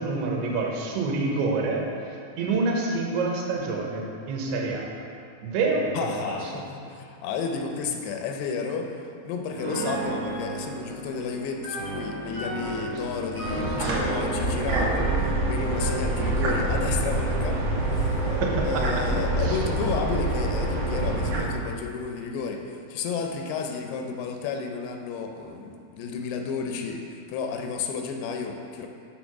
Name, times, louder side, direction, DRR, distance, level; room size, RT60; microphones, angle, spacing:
voice 1, 0.0-4.8 5.4-5.9 6.2-6.4 18.3-19.0 19.4-19.6, right 3 dB, 85° right, -1 dB, 3.0 m, -27 dB
voice 2, 5.9-17.6 17.9-18.2 18.6-27.0 27.3-28.9, left 5 dB, 85° left, 3 dB, 2.6 m, -32 dB
Piano, 9.5-16.5, right 1 dB, 40° right, 2.4 m, -33 dB
sound 1, 13.4-21.4, right 2 dB, 70° right, 1.5 m, -26 dB
7.2 x 4.6 x 6.0 m, 2.4 s
omnidirectional pair, 4.5 m